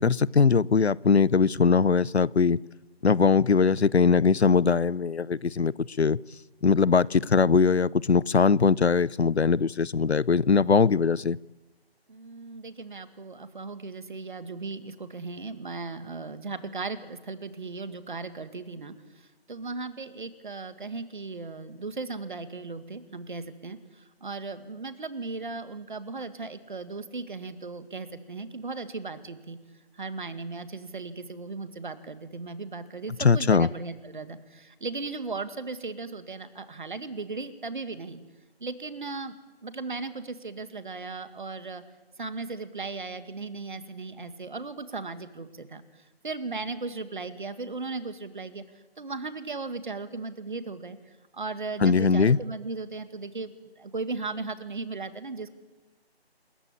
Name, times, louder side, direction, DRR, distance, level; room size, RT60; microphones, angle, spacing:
voice 1, 0.0-2.6 3.0-6.2 6.6-11.4 33.2-33.7 51.8-52.4, left 5 dB, 85° left, 0.7 m, -21 dB
voice 2, 12.1-18.9 19.5-29.6 29.9-38.2 38.6-39.3 39.6-41.8 42.2-45.8 46.2-48.6 49.0-51.0 51.3-55.5, right 3 dB, 50° right, 2.1 m, -37 dB
27.0 x 14.5 x 9.9 m
figure-of-eight pair, 160°, 32 cm